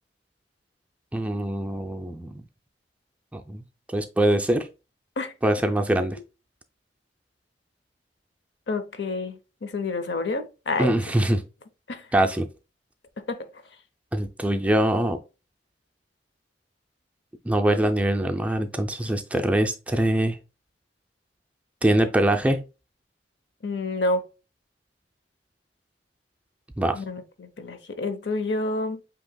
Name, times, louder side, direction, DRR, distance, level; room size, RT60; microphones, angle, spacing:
voice 1, 1.1-2.4 3.3-3.6 3.9-4.7 5.4-6.2 10.8-11.4 12.1-12.5 14.1-15.2 17.5-20.4 21.8-22.7 26.8-27.0, right 1 dB, 10° right, 0.4 m, -23 dB
voice 2, 8.7-11.0 11.9-12.1 13.2-13.5 23.6-24.2 26.9-29.0, left 2 dB, 70° left, 0.7 m, -29 dB
7.7 x 2.9 x 2.2 m
head